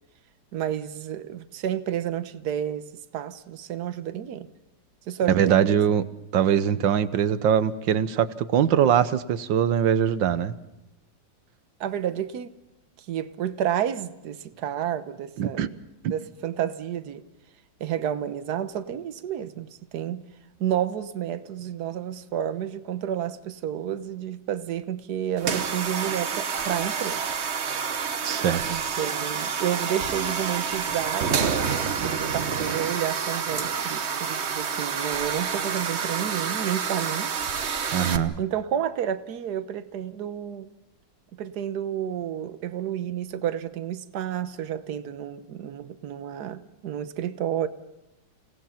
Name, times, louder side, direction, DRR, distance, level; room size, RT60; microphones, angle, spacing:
voice 1, 0.5-2.9 3.1-4.5 5.1-5.8 11.8-12.5 13.0-15.7 16.1-17.2 17.8-20.2 20.6-27.2 28.7-37.3 38.4-40.7 41.4-47.7, right 10 dB, 60° right, 1.5 m, -30 dB
voice 2, 5.3-6.0 6.3-10.5 15.4-15.7 16.0-16.1 28.2-28.8 37.9-38.4, right 9 dB, 85° right, 1.7 m, -22 dB
sound 1, 25.4-38.2, right 6 dB, 45° right, 1.2 m, -28 dB
30.0 x 18.0 x 5.8 m
omnidirectional pair, 2.0 m